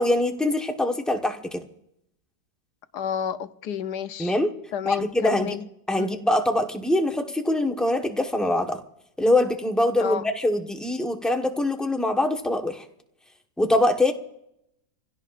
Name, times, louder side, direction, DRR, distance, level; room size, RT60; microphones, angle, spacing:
voice 1, 0.0-1.6 4.2-4.5 4.8-5.6 5.9-8.8 9.2-12.8 13.6-14.1, left 1 dB, ahead, 4 dB, 0.8 m, -23 dB
voice 2, 2.9-4.4 4.7-5.6 5.9-6.1 10.0-10.2, left 8 dB, 75° left, 11 dB, 1.3 m, -30 dB
27.5 x 16.5 x 2.5 m, 0.79 s
omnidirectional pair, 1.8 m